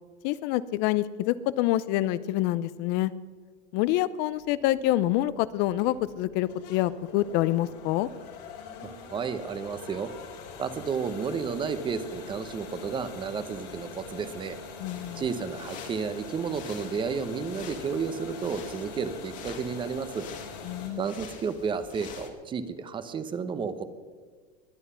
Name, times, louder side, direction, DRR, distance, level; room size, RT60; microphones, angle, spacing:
voice 1, 0.2-3.1 3.7-8.1 14.8-15.2 20.6-21.0, left 15 dB, 55° left, 16 dB, 0.5 m, -26 dB
sound 1, 4.3-20.9, left 5 dB, 80° left, 3.5 m, -44 dB
voice 2, 8.8-10.1 10.6-14.6 15.1-20.3 21.0-23.8, right 6 dB, 25° right, 12 dB, 0.9 m, -32 dB
sound 2, 14.9-22.3, left 6 dB, 40° left, 2.0 m, -47 dB
21.5 x 8.2 x 5.7 m, 1.5 s
supercardioid pair, 135°, 21 cm